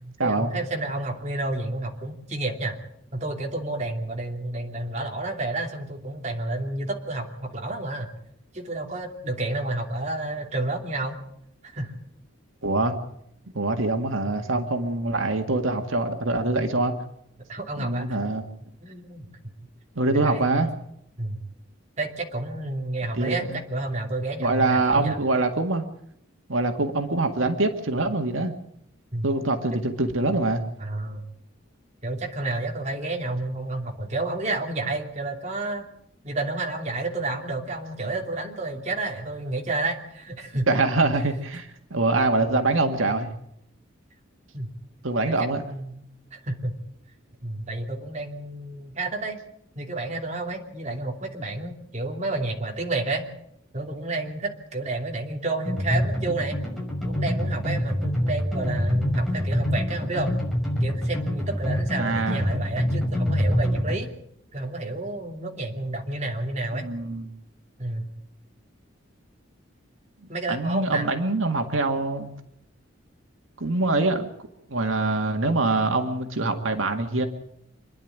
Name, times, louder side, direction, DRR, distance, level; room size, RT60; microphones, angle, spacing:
voice 1, 0.0-2.8 3.1-8.1 8.5-11.2 11.7-11.9 17.5-18.2 18.8-19.3 20.0-20.7 21.2-21.4 22.0-25.2 29.1-29.3 30.8-31.2 32.0-35.8 36.2-40.7 44.5-44.7 45.3-45.4 45.6-46.0 46.3-46.8 47.4-49.4 49.7-53.2 53.7-56.6 57.0-60.4 60.8-64.1 64.5-66.9 67.8-68.1 70.3-71.1, right 2 dB, 35° right, 2 dB, 2.9 m, -30 dB
voice 2, 12.6-12.9 13.5-16.9 17.8-18.4 20.0-20.7 23.1-23.6 24.4-25.8 26.5-28.5 29.2-30.6 40.7-43.3 45.0-45.6 62.0-62.4 66.7-67.3 70.5-72.3 73.6-74.3 74.7-77.3, right 2 dB, 85° right, 5 dB, 1.9 m, -24 dB
sound 1, 55.6-64.0, equal, ahead, 6.1 m, -26 dB
27.0 x 10.5 x 9.5 m, 0.76 s
head